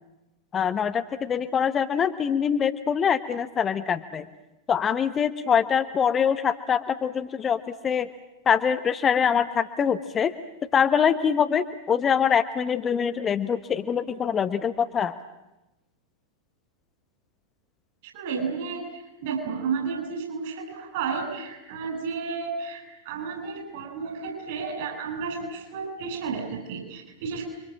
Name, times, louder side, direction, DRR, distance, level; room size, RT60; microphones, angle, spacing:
voice 1, 0.5-4.2 4.7-8.1 8.5-10.3 10.7-15.1, left 7 dB, 25° left, 9 dB, 1.3 m, -24 dB
voice 2, 18.0-27.5, right 5 dB, 50° right, 5 dB, 7.6 m, -32 dB
29.5 x 24.0 x 7.5 m, 0.99 s
figure-of-eight pair, 90°, 0 cm